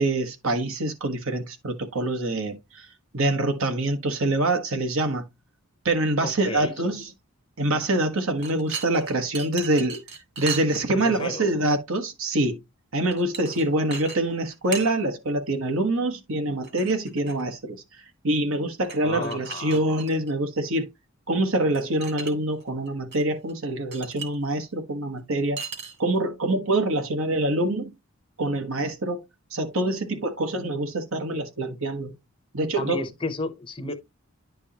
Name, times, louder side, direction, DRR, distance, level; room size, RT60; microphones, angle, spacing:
voice 1, 0.0-2.9 3.1-5.2 5.8-7.1 7.6-10.0 10.4-12.6 12.9-17.8 18.2-20.9 21.3-25.6 26.0-27.9 28.4-29.2 29.5-32.2 32.5-33.1, right 2 dB, 65° right, 1.2 m, -25 dB
voice 2, 6.2-6.7 10.9-11.5 19.0-19.8 32.8-33.9, left 2 dB, 20° left, 0.7 m, -32 dB
sound 1, 8.4-11.3 13.1-13.6 13.9-14.2 14.4-14.9 16.6-17.4 18.8-20.3 21.7-22.3 22.6-23.2 23.5-23.6 23.9-24.3 25.6-26.2, right 5 dB, 50° right, 2.2 m, -37 dB
10.0 x 4.6 x 2.8 m
head